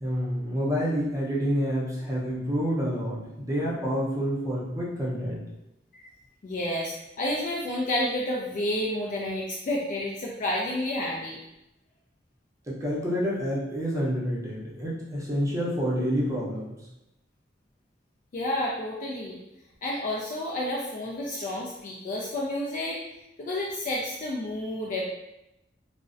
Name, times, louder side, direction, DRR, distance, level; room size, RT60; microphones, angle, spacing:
voice 1, 0.0-5.4 12.7-16.8, equal, 20° right, -6 dB, 0.6 m, -28 dB
voice 2, 6.4-11.4 18.3-19.4 19.8-23.0 23.4-25.1, left 1 dB, 45° left, -3 dB, 0.3 m, -30 dB
2.5 x 2.0 x 2.5 m, 0.90 s
head